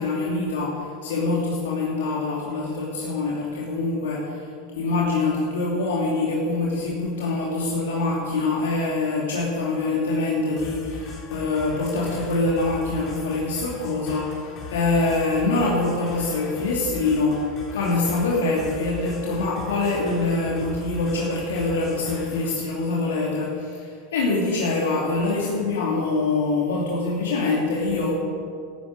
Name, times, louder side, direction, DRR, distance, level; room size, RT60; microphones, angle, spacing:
voice 1, 0.0-4.4 4.8-28.1, left 3 dB, 85° left, -4 dB, 2.6 m, -24 dB
sound 1, 10.6-22.6, left 4 dB, 40° left, 4.2 m, -40 dB
12.0 x 9.5 x 9.3 m, 2.3 s
supercardioid pair, 115°, 0 cm